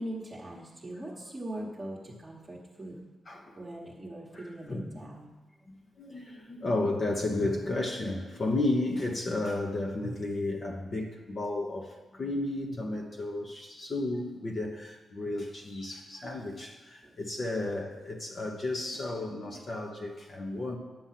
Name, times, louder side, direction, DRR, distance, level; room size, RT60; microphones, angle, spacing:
voice 1, 0.0-3.0 3.6-5.4 15.9-16.3 17.0-17.1 18.9-19.3 19.5-19.7, right 1 dB, 20° right, -5 dB, 1.3 m, -41 dB
voice 2, 3.3-3.6 4.3-5.0 5.7-20.8, left 2 dB, 35° left, 1 dB, 1.0 m, -33 dB
10.5 x 7.0 x 5.8 m, 1.2 s
wide cardioid pair, 145°, 0 cm